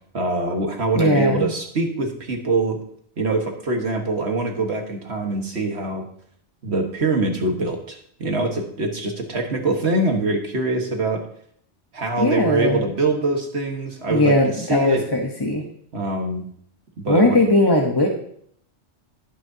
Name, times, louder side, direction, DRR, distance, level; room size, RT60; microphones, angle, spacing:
voice 1, 0.1-2.8 3.2-6.0 6.6-11.3 11.9-15.0 15.9-16.5 17.0-17.4, right 2 dB, 65° right, 3 dB, 1.7 m, -24 dB
voice 2, 0.9-1.5 12.2-12.8 14.1-15.6 17.1-18.1, left 1 dB, 20° left, 0 dB, 1.0 m, -19 dB
17.5 x 6.4 x 2.8 m, 0.66 s
omnidirectional pair, 1.2 m